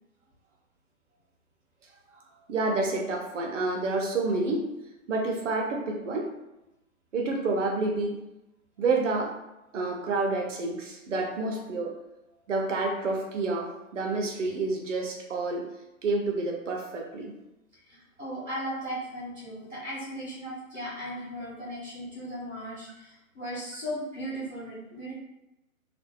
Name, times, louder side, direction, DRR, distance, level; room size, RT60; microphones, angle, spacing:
voice 1, 2.5-4.7 5.1-6.3 7.1-8.1 8.8-9.4 9.7-12.0 12.5-15.7 16.0-17.3, right 3 dB, 60° right, 1 dB, 0.6 m, -29 dB
voice 2, 17.9-25.1, equal, 5° left, -22 dB, 0.4 m, -37 dB
2.5 x 2.1 x 2.3 m, 0.94 s
hypercardioid pair, 145°, 43 cm